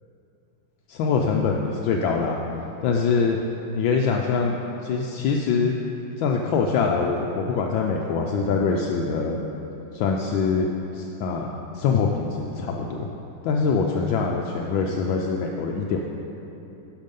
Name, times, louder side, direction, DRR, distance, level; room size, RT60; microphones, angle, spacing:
voice 1, 0.9-2.4 2.8-3.4 3.7-4.6 4.8-5.7 6.2-9.4 9.9-10.7 10.9-13.1 13.4-16.0, left 5 dB, 75° left, 1 dB, 1.3 m, -24 dB
11.5 x 5.5 x 5.3 m, 3.0 s
omnidirectional pair, 2.2 m